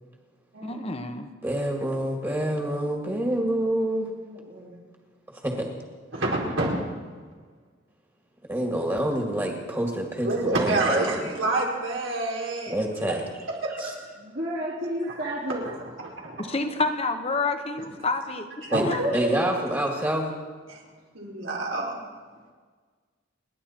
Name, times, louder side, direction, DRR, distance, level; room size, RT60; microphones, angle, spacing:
voice 1, 0.6-1.3 16.4-18.5 18.8-19.1, left 3 dB, 30° left, 7 dB, 1.2 m, -28 dB
voice 2, 1.4-4.1 5.4-5.7 8.5-11.3 12.7-13.2 13.8-13.9 18.7-20.3, right 1 dB, 15° right, 0 dB, 2.0 m, -27 dB
voice 3, 4.2-4.8 14.2-15.6, equal, 55° right, -6 dB, 3.0 m, -32 dB
voice 4, 6.1-6.7 10.2-12.8 13.6-13.9 15.2-15.3 16.2-16.4 18.6-19.8 20.7-20.8 21.1-21.9, right 2 dB, 85° right, -3 dB, 4.3 m, -27 dB
29.5 x 11.0 x 4.4 m, 1.5 s
head